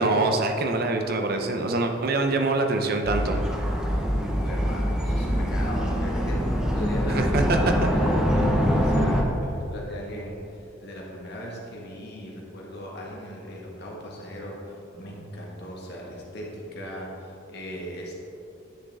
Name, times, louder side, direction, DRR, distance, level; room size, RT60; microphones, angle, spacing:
voice 1, 0.0-3.4 7.1-7.9, right 2 dB, 50° right, 4 dB, 0.8 m, -24 dB
top of hill inside city distant skyline sounds spring time, 3.0-9.2, equal, 5° right, 0.7 m, -24 dB
voice 2, 4.1-6.4 6.7-18.1, equal, 55° left, -3 dB, 1.8 m, -38 dB
10.0 x 6.5 x 3.6 m, 2.8 s
head